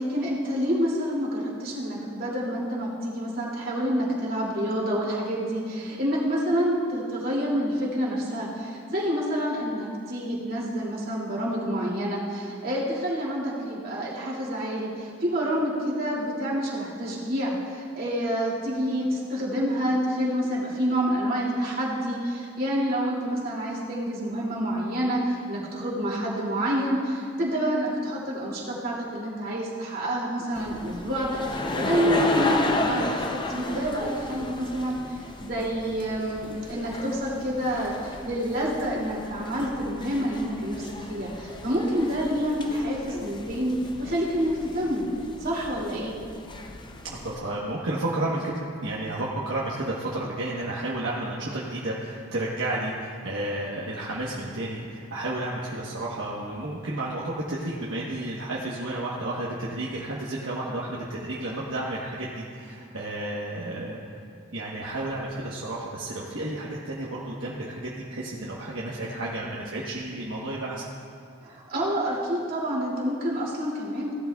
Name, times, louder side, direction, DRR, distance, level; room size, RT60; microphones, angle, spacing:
voice 1, 0.0-45.0 45.4-46.1 71.4-74.1, equal, 45° right, -5 dB, 2.6 m, -28 dB
sound 1, 30.6-47.4, left 2 dB, 25° left, 0.5 m, -34 dB
voice 2, 47.0-64.0 64.5-70.9, right 1 dB, 70° right, -6 dB, 1.2 m, -32 dB
16.5 x 11.5 x 2.4 m, 2.4 s
head